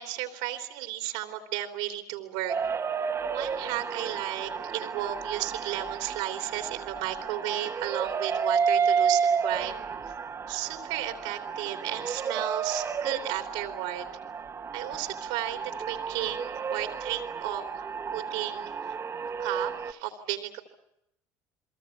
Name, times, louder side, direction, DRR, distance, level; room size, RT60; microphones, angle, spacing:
voice 1, 0.0-2.6 3.3-9.9 10.5-14.1 14.7-15.6 15.9-18.7 19.4-20.6, right 13 dB, 80° right, 6 dB, 3.1 m, -34 dB
sound 1, 2.5-19.9, right 6 dB, 35° right, 1.8 m, -31 dB
29.5 x 22.5 x 7.3 m, 0.81 s
supercardioid pair, 80°, 8 cm